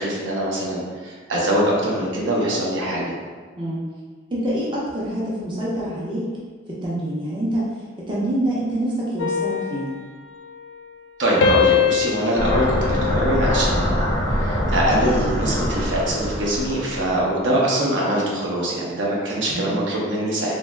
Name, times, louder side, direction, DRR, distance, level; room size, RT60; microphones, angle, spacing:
voice 1, 0.0-3.1 11.2-20.5, right 1 dB, 65° right, -3 dB, 0.6 m, -23 dB
voice 2, 4.3-6.3 6.7-7.7 8.0-9.9 19.5-19.7, right 1 dB, 25° right, -6 dB, 0.5 m, -26 dB
sound 1, 9.2-11.1 11.4-14.0 14.4-14.8, left 7 dB, 65° left, 0.4 m, -24 dB
sound 2, 12.4-17.3, equal, 20° left, 0.5 m, -24 dB
3.1 x 2.6 x 2.2 m, 1.5 s
head